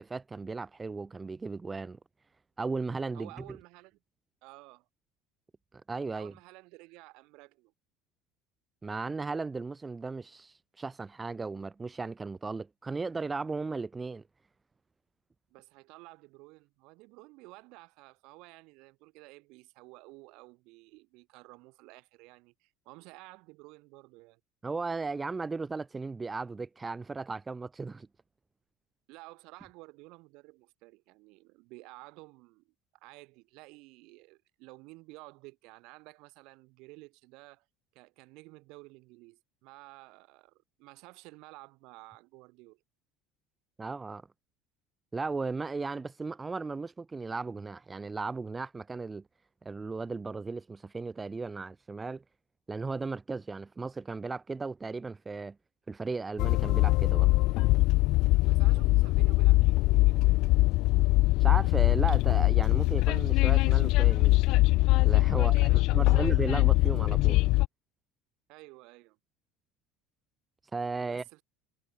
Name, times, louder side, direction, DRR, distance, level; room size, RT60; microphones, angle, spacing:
voice 1, 0.0-2.0 2.6-3.4 5.9-6.3 8.8-14.2 24.6-28.1 43.8-44.2 45.1-49.2 49.6-52.2 52.7-55.6 55.9-57.3 61.4-64.4 65.0-67.4 70.7-71.2, right 4 dB, 20° right, 2.5 m, -36 dB
voice 2, 3.1-4.0 4.4-4.9 6.2-7.7 15.5-24.4 29.1-37.6 37.9-42.8 58.5-60.5 65.3-66.3 68.5-69.2 71.0-71.4, right 24 dB, 55° right, 3.0 m, -52 dB
Train, 56.4-67.7, left 21 dB, 50° left, 0.4 m, -23 dB
figure-of-eight pair, 65°, 0 cm